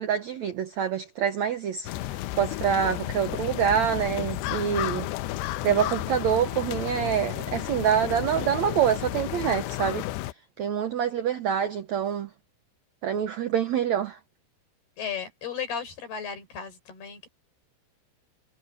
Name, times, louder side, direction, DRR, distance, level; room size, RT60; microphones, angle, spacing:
voice 1, 0.0-5.1 5.6-10.1 10.6-12.3 13.0-14.2, right 9 dB, 90° right, 1.6 m, -26 dB
sound 1, 1.9-10.3, left 16 dB, 90° left, 2.8 m, -32 dB
voice 2, 15.0-17.3, left 7 dB, 70° left, 6.9 m, -35 dB
omnidirectional pair, 4.8 m